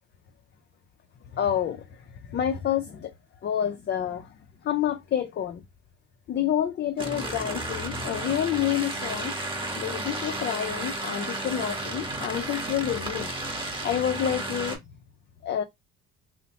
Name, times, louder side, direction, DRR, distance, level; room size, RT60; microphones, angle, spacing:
voice 1, 1.3-1.9 2.2-3.1 3.4-4.3 4.6-5.6 6.3-9.4 9.8-13.3 13.8-14.8 15.4-15.6, left 10 dB, 40° left, 0.4 m, -28 dB
sound 1, 7.0-14.8, right 2 dB, 15° right, 0.9 m, -33 dB
2.8 x 2.0 x 2.8 m
cardioid pair, 85°, 29 cm